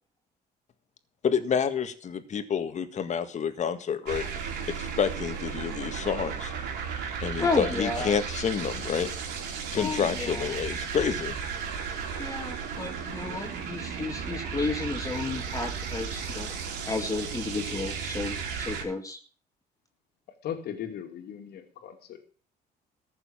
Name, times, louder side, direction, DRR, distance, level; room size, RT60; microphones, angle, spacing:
voice 1, 1.2-4.3 4.7-6.5 7.2-9.1 9.7-11.4, left 7 dB, 45° left, 10 dB, 1.8 m, -29 dB
sound 1, 4.1-18.8, right 6 dB, 85° right, 4.1 m, -35 dB
voice 2, 7.4-8.2 9.8-10.6 12.2-16.5 16.9-19.2, left 3 dB, 20° left, 4 dB, 2.2 m, -32 dB
voice 3, 20.4-22.2, left 9 dB, 70° left, 5 dB, 2.6 m, -38 dB
14.5 x 6.9 x 8.7 m, 0.42 s
cardioid pair, 110°, 17 cm